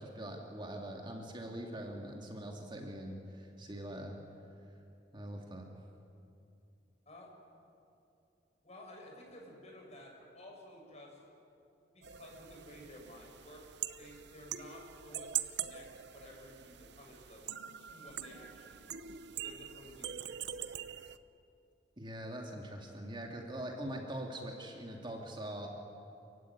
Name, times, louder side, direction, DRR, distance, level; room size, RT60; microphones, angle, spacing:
voice 1, 0.0-4.2 5.1-5.7 22.0-25.7, right 1 dB, 25° right, 1 dB, 2.3 m, -43 dB
voice 2, 8.6-11.2 11.9-13.7 14.0-15.9 16.1-17.5 17.8-19.0 19.4-20.4, left 1 dB, 40° left, 0 dB, 6.6 m, -53 dB
sound 1, 12.0-21.2, right 10 dB, 70° right, 0.8 m, -43 dB
28.0 x 15.5 x 9.9 m, 2.6 s
head